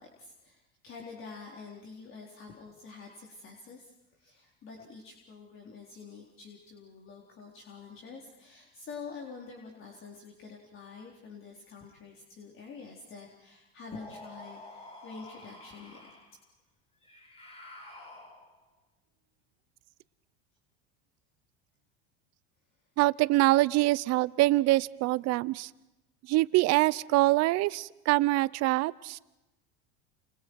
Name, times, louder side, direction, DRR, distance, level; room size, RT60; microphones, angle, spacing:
voice 1, 0.0-16.1, left 4 dB, 40° left, -1 dB, 4.0 m, -47 dB
sound 1, 13.9-16.4 17.0-18.7, left 2 dB, 20° left, 7.0 m, -49 dB
voice 2, 23.0-25.7 26.3-29.2, right 19 dB, 55° right, 19 dB, 0.8 m, -25 dB
30.0 x 28.0 x 4.8 m, 0.98 s
supercardioid pair, 100°, 32 cm